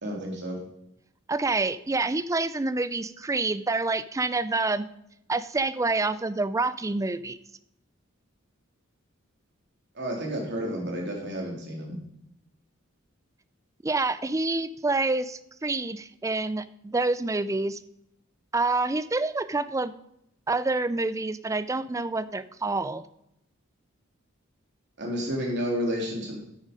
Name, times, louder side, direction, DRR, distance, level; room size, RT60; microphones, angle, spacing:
voice 1, 0.0-0.6 9.9-12.0 25.0-26.4, equal, 55° right, 0 dB, 3.2 m, -31 dB
voice 2, 1.3-4.9 5.3-7.4 13.8-17.8 18.5-20.0 20.5-23.0, right 3 dB, 15° right, 15 dB, 0.4 m, -27 dB
9.5 x 8.9 x 5.1 m, 0.79 s
head